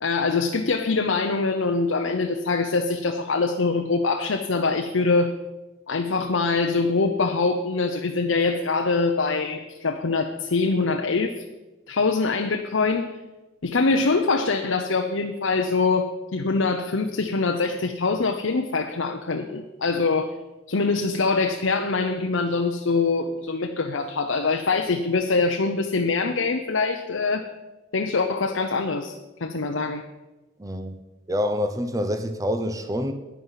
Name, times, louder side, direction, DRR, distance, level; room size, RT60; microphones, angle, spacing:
voice 1, 0.0-5.3 5.9-11.4 11.9-13.1 13.6-20.4 20.7-27.4 27.9-29.1 29.4-30.0, left 4 dB, 75° left, 5 dB, 0.8 m, -24 dB
voice 2, 30.6-31.0 31.3-33.1, equal, 15° right, 8 dB, 0.8 m, -26 dB
10.5 x 9.7 x 5.7 m, 1.1 s
head